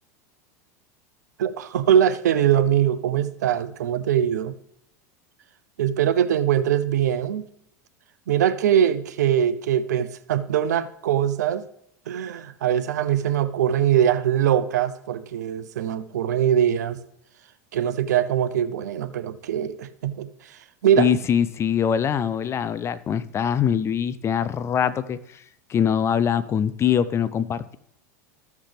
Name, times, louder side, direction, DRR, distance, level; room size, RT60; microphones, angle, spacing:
voice 1, 1.4-4.5 5.8-7.5 8.3-11.7 12.1-17.0 17.7-20.3 20.8-21.1, right 10 dB, 80° right, 13 dB, 0.6 m, -22 dB
voice 2, 21.0-25.2 25.7-27.8, left 8 dB, 30° left, 15 dB, 0.6 m, -23 dB
14.5 x 5.9 x 3.4 m, 0.75 s
hypercardioid pair, 95°, 9 cm